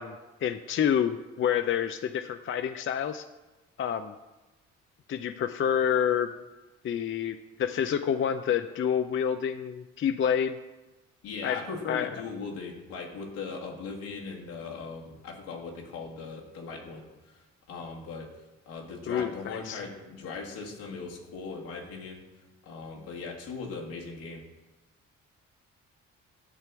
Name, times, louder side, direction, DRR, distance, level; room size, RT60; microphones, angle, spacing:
voice 1, 0.0-3.2 3.8-4.1 5.1-6.3 6.8-10.6 11.4-11.6 11.9-12.1 19.1-19.8, left 8 dB, 30° left, 10 dB, 0.5 m, -28 dB
voice 2, 11.2-17.1 17.3-17.4 17.7-18.3 18.7-22.2 22.6-24.4, left 4 dB, 65° left, -1 dB, 2.0 m, -39 dB
11.0 x 4.4 x 7.1 m, 1.1 s
figure-of-eight pair, 40°, 39 cm